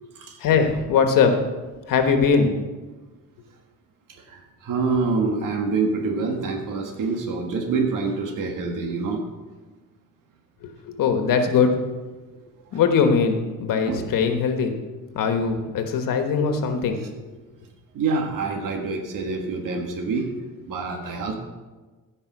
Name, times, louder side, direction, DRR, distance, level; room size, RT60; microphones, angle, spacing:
voice 1, 0.4-1.4 1.9-2.6 10.6-11.7 12.7-14.7 15.1-17.3, left 5 dB, 80° left, 6 dB, 1.4 m, -21 dB
voice 2, 4.3-9.2 13.8-14.0 17.9-20.3 20.6-21.3, right 4 dB, 75° right, 2 dB, 1.6 m, -26 dB
15.5 x 5.4 x 6.1 m, 1.3 s
cardioid pair, 155°, 33 cm